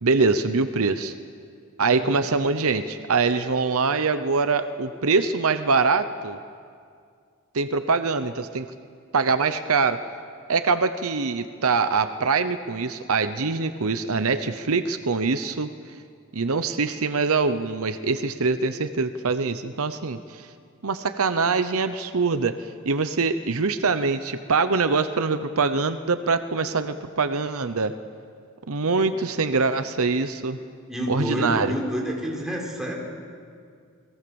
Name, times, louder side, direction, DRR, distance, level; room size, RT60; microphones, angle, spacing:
voice 1, 0.0-1.1 1.8-6.4 7.5-8.7 9.1-10.0 10.5-15.7 16.3-20.5 20.8-27.9 28.7-30.6 31.1-31.7, right 4 dB, 70° right, 10 dB, 0.9 m, -24 dB
voice 2, 30.9-32.9, equal, ahead, -1 dB, 4.5 m, -29 dB
29.5 x 21.0 x 7.1 m, 2.2 s
head